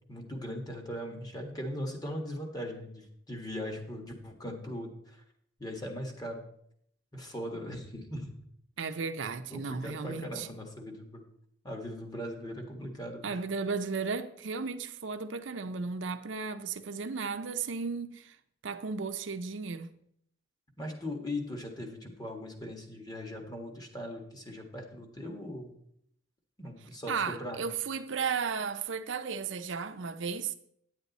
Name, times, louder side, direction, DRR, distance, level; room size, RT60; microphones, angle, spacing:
voice 1, 0.1-5.2 5.6-6.4 7.1-8.3 9.5-11.2 11.6-13.4 20.8-25.7 26.6-27.6, left 1 dB, 20° left, 1.6 m, -39 dB
voice 2, 8.8-10.5 13.2-18.4 18.6-19.9 27.1-30.5, right 5 dB, 85° right, 0.7 m, -34 dB
9.6 x 8.9 x 4.1 m
head